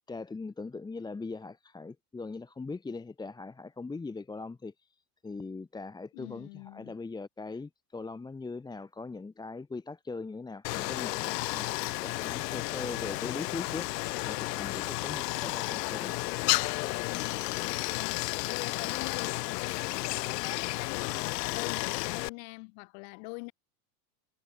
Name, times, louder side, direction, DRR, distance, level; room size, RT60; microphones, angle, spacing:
voice 1, 0.1-4.9 5.2-11.7 12.0-13.9 14.2-16.1 18.8-18.9, left 3 dB, 10° left, 1.5 m, -40 dB
voice 2, 6.1-7.0 17.0-18.2 18.5-23.5, left 36 dB, 55° left, 1.7 m, -43 dB
Stream, 10.6-22.3, left 21 dB, 80° left, 1.9 m, -32 dB
supercardioid pair, 155°, 48 cm